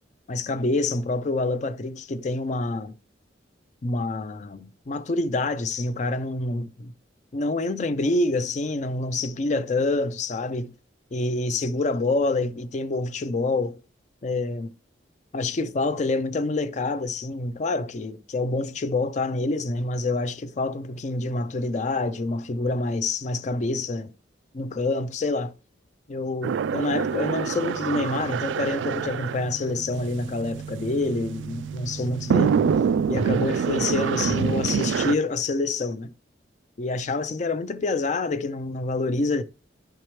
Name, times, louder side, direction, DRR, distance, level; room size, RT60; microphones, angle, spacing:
voice 1, 0.3-2.9 3.8-6.9 7.3-10.7 11.1-13.8 14.2-14.7 15.3-24.1 24.5-25.5 26.1-32.6 33.1-36.1 36.8-39.4, left 2 dB, 40° left, 0.4 m, -27 dB
sound 1, 26.4-35.1, right 6 dB, 80° right, 0.3 m, -26 dB
10.5 x 4.5 x 3.1 m
head